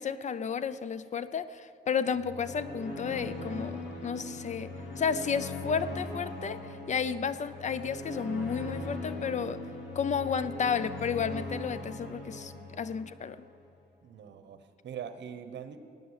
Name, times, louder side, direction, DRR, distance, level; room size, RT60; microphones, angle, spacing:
voice 1, 0.0-9.6 9.9-13.4, left 6 dB, 40° left, 14 dB, 0.6 m, -32 dB
sound 1, 2.1-13.4, left 2 dB, 85° left, 3.4 m, -40 dB
voice 2, 14.0-15.8, right 8 dB, 80° right, 10 dB, 1.1 m, -42 dB
18.0 x 9.3 x 8.2 m, 2.6 s
wide cardioid pair, 150°, 18 cm